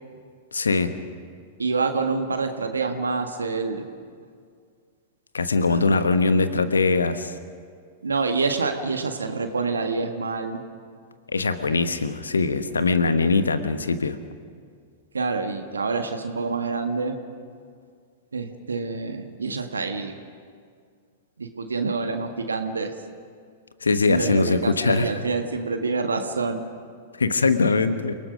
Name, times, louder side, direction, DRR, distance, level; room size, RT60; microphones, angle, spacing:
voice 1, 0.5-0.9 5.3-7.3 11.3-14.2 23.8-25.1 27.2-28.1, left 4 dB, 80° left, 11 dB, 1.2 m, -22 dB
voice 2, 1.6-3.8 5.7-5.8 8.0-10.6 15.1-17.2 18.3-20.1 21.4-22.9 24.1-26.6, right 4 dB, 80° right, 6 dB, 1.5 m, -27 dB
29.0 x 18.5 x 5.2 m, 2.1 s
figure-of-eight pair, 100°, 0 cm